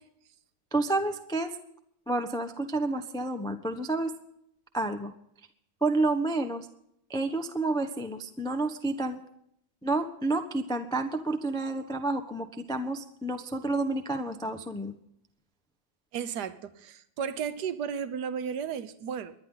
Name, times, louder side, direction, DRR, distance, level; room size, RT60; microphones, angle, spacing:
voice 1, 0.7-1.6 2.1-4.1 4.7-5.1 5.8-6.7 7.1-9.2 9.8-14.9, right 2 dB, 5° left, 7 dB, 0.6 m, -30 dB
voice 2, 16.1-19.3, right 7 dB, 55° right, 12 dB, 1.5 m, -34 dB
24.0 x 11.0 x 3.9 m, 0.73 s
omnidirectional pair, 2.3 m